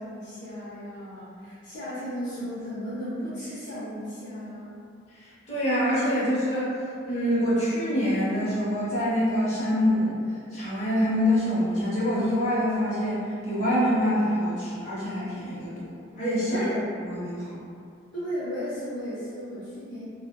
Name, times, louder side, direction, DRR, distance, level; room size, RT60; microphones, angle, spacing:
voice 1, 0.0-4.8 16.4-16.8 18.1-20.1, equal, 60° left, -11 dB, 0.6 m, -35 dB
voice 2, 5.1-6.7 7.0-10.1 10.5-16.6 17.0-17.6, equal, 35° left, -11 dB, 0.9 m, -25 dB
2.7 x 2.1 x 2.2 m, 2.4 s
head